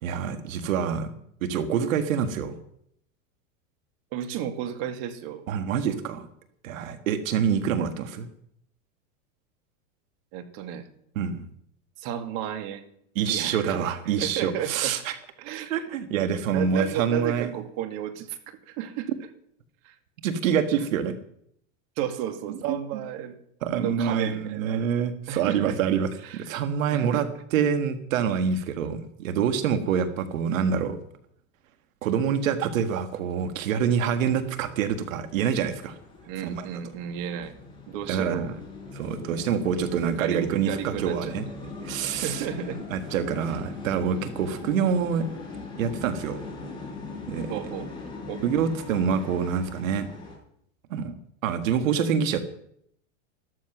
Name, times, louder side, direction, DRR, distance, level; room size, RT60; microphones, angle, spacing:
voice 1, 0.0-1.1 1.4-2.6 5.5-6.3 6.6-8.3 11.2-11.5 13.2-15.2 15.7-17.5 20.2-21.2 22.7-22.8 23.6-31.0 32.0-36.0 36.4-36.7 38.1-38.5 38.9-41.5 41.8-42.5 42.9-45.3 45.8-46.4 47.3-47.6 48.4-50.1 50.9-51.1 51.4-52.4, right 7 dB, 85° right, 9 dB, 1.7 m, -26 dB
voice 2, 4.1-5.4 10.3-10.9 12.0-12.8 13.2-13.9 14.2-14.9 15.4-15.8 16.5-19.1 19.8-19.9 22.0-23.4 23.8-24.9 25.3-25.8 26.2-26.4 26.9-27.2 36.3-37.5 37.9-38.5 40.2-41.3 42.1-42.8 47.5-47.9 48.3-48.5, right 10 dB, 55° right, 8 dB, 2.3 m, -33 dB
sound 1, 34.0-50.4, left 3 dB, 10° left, 5.9 m, -40 dB
14.0 x 13.0 x 6.0 m, 0.71 s
supercardioid pair, 135°, 39 cm